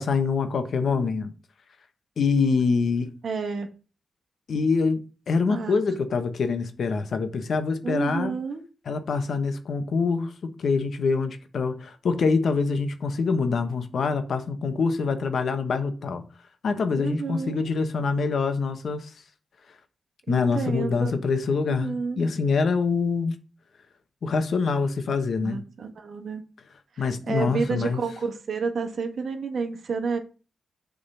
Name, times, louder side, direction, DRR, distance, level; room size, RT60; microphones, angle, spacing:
voice 1, 0.0-1.3 2.2-3.1 4.5-5.0 5.3-8.3 8.9-16.3 16.6-19.1 20.3-23.4 24.2-25.6 27.0-28.0, left 4 dB, 75° left, 1.0 m, -25 dB
voice 2, 3.2-3.7 5.5-5.8 7.8-8.7 16.9-17.7 20.3-21.1 21.7-22.3 25.4-26.4 26.9-30.2, right 5 dB, 70° right, 1.5 m, -30 dB
7.1 x 3.8 x 5.6 m
wide cardioid pair, 100°, 0 cm